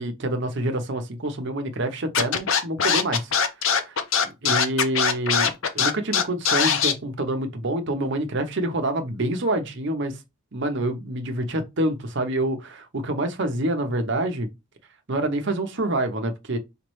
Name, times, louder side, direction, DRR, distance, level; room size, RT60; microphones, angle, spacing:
voice 1, 0.0-3.3 3.7-4.0 4.4-5.5 5.7-10.2 10.5-14.5 15.1-16.6, right 1 dB, 55° right, 0.7 m, -27 dB
Scratching (performance technique), 2.1-6.9, left 6 dB, 65° left, 0.7 m, -21 dB
5.0 x 3.1 x 3.1 m
head